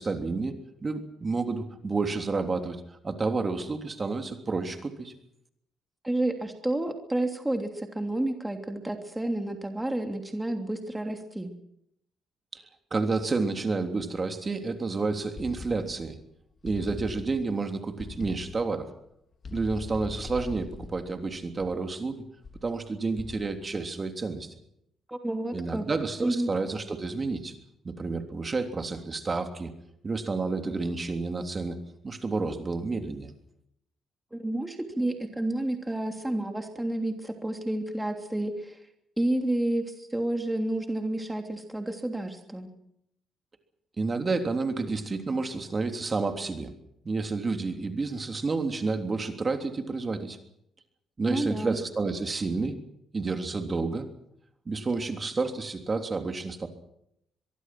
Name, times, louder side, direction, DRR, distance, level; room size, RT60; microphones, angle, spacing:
voice 1, 0.0-5.1 12.5-12.6 12.9-16.2 16.6-18.9 19.5-22.2 22.6-24.5 25.5-27.5 27.8-29.7 30.0-31.8 32.0-33.3 44.0-46.7 47.0-50.4 51.2-52.8 53.1-54.1 54.6-56.7, right 3 dB, 30° right, 6 dB, 3.3 m, -30 dB
voice 2, 6.0-11.5 25.1-25.8 26.2-26.5 34.3-38.8 39.2-42.7 51.3-51.8, right 1 dB, 10° right, 4 dB, 3.0 m, -30 dB
sound 1, 15.4-16.2 16.7-17.6 18.0-18.8 19.4-22.0 22.4-22.8 23.2-23.7, left 3 dB, 40° left, 3.4 m, -42 dB
24.5 x 22.5 x 6.2 m, 0.76 s
cardioid pair, 90°, 0 cm